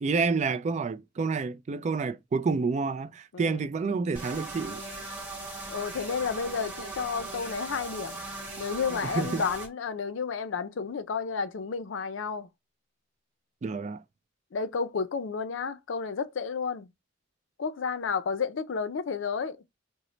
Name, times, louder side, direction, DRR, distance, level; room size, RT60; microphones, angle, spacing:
voice 1, 0.0-4.8 9.0-9.4 13.6-14.0, right 4 dB, 35° right, 0.3 m, -29 dB
sound 1, 4.1-9.7, right 3 dB, 10° right, 1.1 m, -39 dB
voice 2, 5.7-8.2 8.6-12.5 14.5-16.9 17.6-19.6, left 5 dB, 80° left, 0.4 m, -31 dB
3.1 x 2.1 x 3.8 m
head